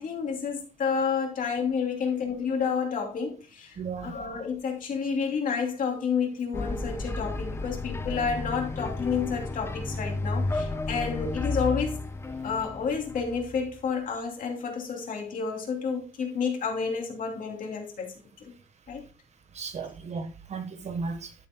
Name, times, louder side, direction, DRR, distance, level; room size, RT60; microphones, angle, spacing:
voice 1, 0.0-3.8 4.0-12.1 12.4-18.1 18.4-18.5 18.9-19.1, left 6 dB, 65° left, 2.9 m, -30 dB
voice 2, 3.8-4.2 19.5-21.3, right 4 dB, 50° right, 1.3 m, -35 dB
sound 1, 6.5-13.8, left 2 dB, 15° left, 0.7 m, -32 dB
12.5 x 7.4 x 2.2 m
wide cardioid pair, 165°, 15 cm